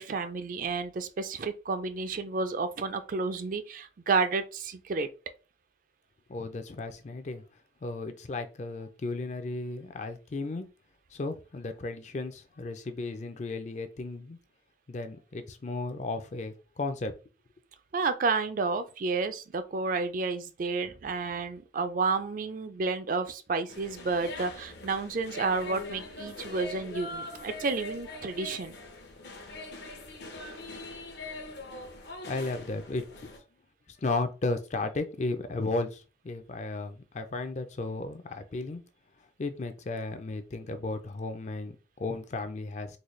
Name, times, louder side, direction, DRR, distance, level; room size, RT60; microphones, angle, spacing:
voice 1, 0.0-5.1 17.9-28.7, right 4 dB, 50° right, 0.4 m, -31 dB
voice 2, 6.3-7.4 7.8-10.7 11.1-14.4 14.9-17.1 32.0-33.3 34.0-38.8 39.4-43.0, left 3 dB, 40° left, 0.4 m, -34 dB
sound 1, 23.7-33.4, left 2 dB, 70° left, 0.8 m, -42 dB
4.0 x 2.2 x 3.1 m
head